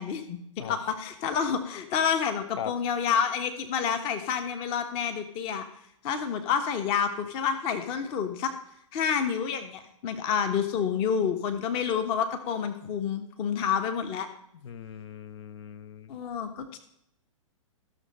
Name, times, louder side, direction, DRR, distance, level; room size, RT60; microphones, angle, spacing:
voice 1, 0.0-5.6 6.0-8.5 8.9-14.3 16.1-16.8, left 7 dB, 35° left, 7 dB, 1.3 m, -29 dB
voice 2, 14.6-16.1, left 8 dB, 55° left, 13 dB, 0.9 m, -39 dB
14.0 x 6.7 x 5.6 m, 0.73 s
figure-of-eight pair, 115°, 17 cm